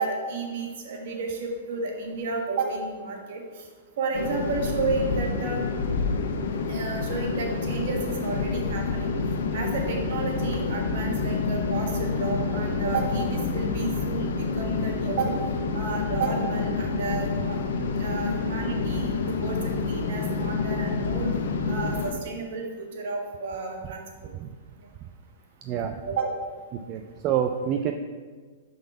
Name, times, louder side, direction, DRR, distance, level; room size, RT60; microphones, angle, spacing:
voice 1, 0.0-3.4 4.0-5.7 6.7-9.1 9.5-15.4 15.7-17.6 18.0-21.3 21.7-24.0 26.1-26.3, right 4 dB, 60° right, 1 dB, 1.3 m, -31 dB
sound 1, 4.1-22.1, left 4 dB, 70° left, 0.7 m, -28 dB
voice 2, 25.6-25.9 26.9-27.9, right 9 dB, 35° right, 5 dB, 0.4 m, -27 dB
5.1 x 3.9 x 5.9 m, 1.5 s
hypercardioid pair, 125°, 0 cm